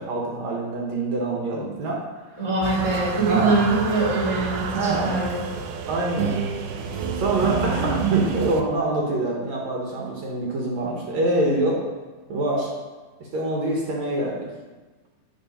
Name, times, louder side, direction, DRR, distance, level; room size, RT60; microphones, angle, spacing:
voice 1, 0.0-2.0 2.3-2.4 3.3-3.6 4.8-5.1 5.9-6.4 7.2-11.8 12.3-12.7 13.3-14.5, right 2 dB, 65° right, -2 dB, 1.8 m, -25 dB
voice 2, 2.4-5.4 7.7-7.9, right 3 dB, 10° right, -5 dB, 1.2 m, -23 dB
sound 1, 2.6-8.6, right 6 dB, 85° right, 1.8 m, -28 dB
8.8 x 4.3 x 5.5 m, 1.3 s
omnidirectional pair, 4.4 m